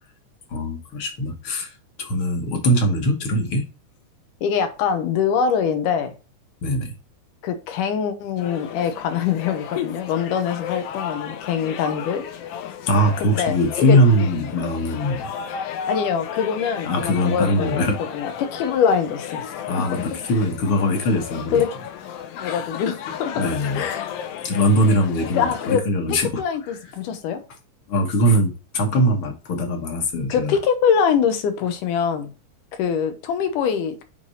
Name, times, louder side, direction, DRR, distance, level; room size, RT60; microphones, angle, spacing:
voice 1, 0.5-1.7 2.0-3.7 6.6-6.9 12.9-15.3 16.8-18.0 19.7-21.6 23.4-23.8 24.4-26.4 27.9-30.6, equal, 55° left, 1.7 m, -21 dB
voice 2, 4.4-6.2 7.4-12.3 13.2-14.0 15.9-20.1 21.5-21.7 22.4-23.5 23.7-24.1 25.3-25.8 26.1-27.4 30.3-32.3 32.7-34.0, left 7 dB, 90° left, 2.6 m, -23 dB
sound 1, 8.4-25.8, left 8 dB, 70° left, 1.5 m, -34 dB
8.1 x 3.4 x 4.1 m
omnidirectional pair, 3.6 m